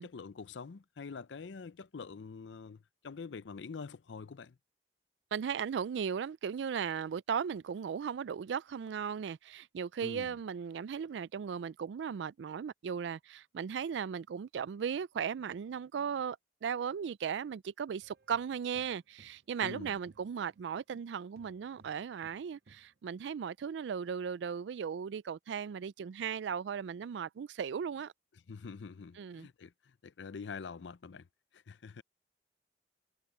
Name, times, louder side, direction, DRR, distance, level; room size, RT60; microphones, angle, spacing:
voice 1, 0.0-4.6 10.0-10.4 19.6-20.0 28.5-31.3 31.5-32.0, left 5 dB, 90° left, 0.5 m, -45 dB
voice 2, 5.3-28.1 29.2-29.5, right 7 dB, 85° right, 0.3 m, -37 dB
sound 1, 18.0-21.1 21.4-23.0, right 3 dB, 60° right, 0.7 m, -63 dB
head